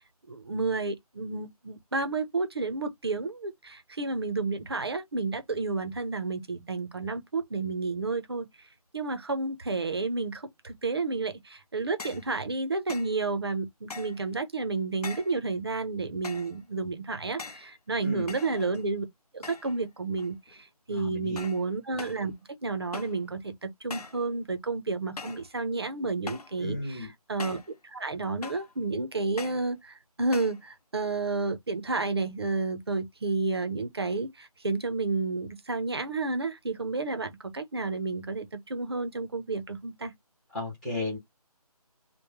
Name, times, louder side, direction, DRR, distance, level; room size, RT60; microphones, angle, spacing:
voice 1, 0.3-8.5 8.9-19.1 19.3-22.3 22.6-40.1, right 3 dB, 40° right, 0.7 m, -31 dB
sound 1, 12.0-12.3 12.9-13.2 13.9-14.3 15.0-15.4 16.2-16.6 17.4-17.7 18.3-18.9 19.4-19.8 20.1-20.6 21.4-21.7 22.0-22.3 22.9-23.2 23.9-24.2 25.2-25.5 26.3-26.6 27.4-27.7 28.4-28.7 29.4-29.7 30.3-30.6, left 4 dB, 75° left, 0.7 m, -42 dB
voice 2, 18.0-18.3 20.9-21.5 26.6-27.1 40.5-41.2, left 2 dB, ahead, 0.9 m, -34 dB
3.1 x 2.2 x 3.5 m
figure-of-eight pair, 165°, 20 cm